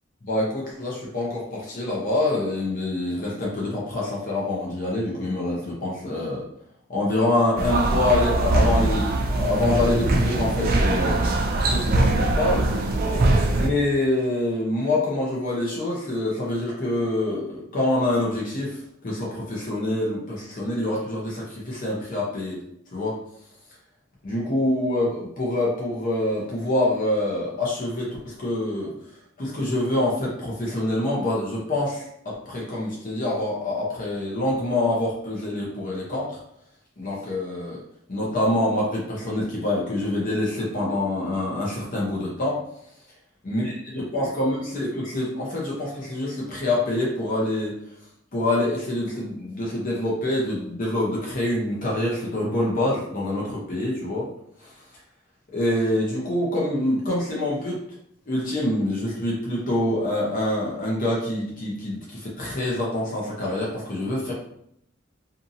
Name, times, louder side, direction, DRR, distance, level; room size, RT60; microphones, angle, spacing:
voice 1, 0.2-6.4 6.9-11.2 11.7-12.7 13.6-18.8 19.0-22.6 22.9-23.2 24.2-28.9 29.4-36.4 37.0-37.8 38.1-42.6 43.4-47.7 48.3-54.3 54.6-54.7 55.5-57.8 58.3-64.3, left 1 dB, 45° left, -5 dB, 0.7 m, -26 dB
sound 1, 7.6-13.7, right 2 dB, 50° right, 0.3 m, -22 dB
2.6 x 2.6 x 2.6 m, 0.72 s
head